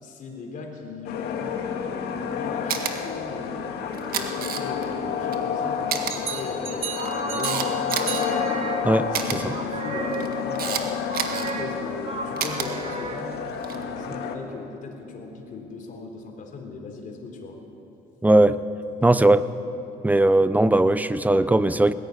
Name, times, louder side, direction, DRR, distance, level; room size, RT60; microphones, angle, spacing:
voice 1, 0.0-13.4 13.7-17.6, left 4 dB, 50° left, 2 dB, 3.8 m, -38 dB
sound 1, 1.0-14.3, left 7 dB, 75° left, 1.9 m, -30 dB
Camera, 2.7-2.9 3.9-4.9 5.3-5.4 5.9-6.1 6.8-8.3 9.1-9.4 10.1-10.8 11.1-11.5 12.4-12.7 13.5-13.8, right 9 dB, 60° right, 1.8 m, -29 dB
sound 2, 6.1-9.1 9.5-10.6 11.1-13.5, right 4 dB, 35° right, 2.5 m, -33 dB
voice 2, 8.8-9.5 18.2-18.6 19.0-19.5 20.0-21.9, right 2 dB, 10° right, 14 dB, 0.6 m, -19 dB
19.0 x 15.5 x 9.8 m, 2.9 s
cardioid pair, 110°, 17 cm